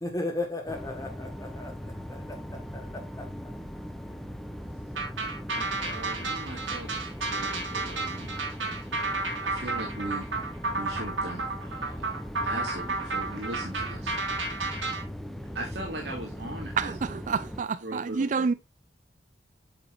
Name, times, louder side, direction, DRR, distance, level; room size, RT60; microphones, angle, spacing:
voice 1, 0.0-1.8 2.1-3.3, left 2 dB, 20° left, 1.5 m, -35 dB
sound 1, 0.7-17.6, equal, ahead, 0.8 m, -39 dB
sound 2, 4.9-15.0, right 3 dB, 90° right, 2.5 m, -32 dB
voice 2, 5.5-8.3 9.4-10.3 10.7-12.0 12.4-14.1 15.5-16.9 17.8-18.5, right 1 dB, 65° right, 2.3 m, -39 dB
voice 3, 16.8-18.5, right 5 dB, 40° right, 0.3 m, -28 dB
8.1 x 7.0 x 2.5 m
head